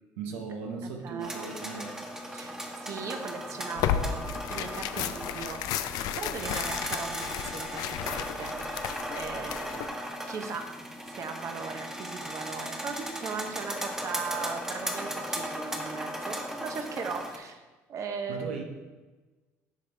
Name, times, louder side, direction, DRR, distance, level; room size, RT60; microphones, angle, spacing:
voice 1, 0.2-2.1 18.3-18.6, right 5 dB, 90° right, 2 dB, 0.7 m, -37 dB
voice 2, 0.8-1.5 2.3-5.6 6.1-10.0 10.3-10.7 11.1-17.6 17.9-18.6, right 5 dB, 50° right, 5 dB, 0.8 m, -38 dB
sound 1, 1.2-17.4, equal, 10° right, 1.2 m, -37 dB
Tearing, 3.8-9.9, left 10 dB, 75° left, 0.4 m, -33 dB
10.0 x 3.6 x 3.3 m, 1.3 s
supercardioid pair, 75°, 7 cm